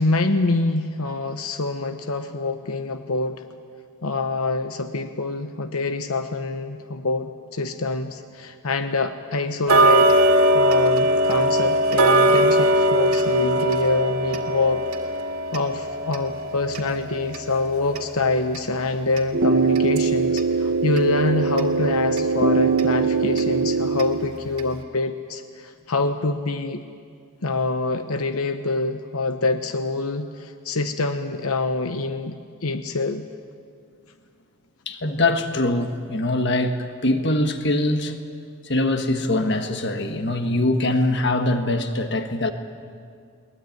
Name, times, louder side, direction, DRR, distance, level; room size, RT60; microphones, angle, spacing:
voice 1, 0.0-3.4 4.0-10.1 10.5-14.9 15.5-26.8 27.4-33.2, left 3 dB, 85° left, 8 dB, 1.0 m, -25 dB
Tick-tock, 9.7-20.5 20.9-21.0 21.6-21.7 22.2-22.3 22.8-22.9 23.4-23.5 24.0-24.1 24.6-24.7, right 1 dB, 85° right, 2.1 m, -21 dB
sound 1, 19.3-24.3, right 4 dB, 50° right, 1.0 m, -21 dB
voice 2, 34.8-38.1 38.6-42.5, left 2 dB, 50° left, 7 dB, 1.5 m, -23 dB
22.5 x 19.5 x 9.5 m, 2.2 s
head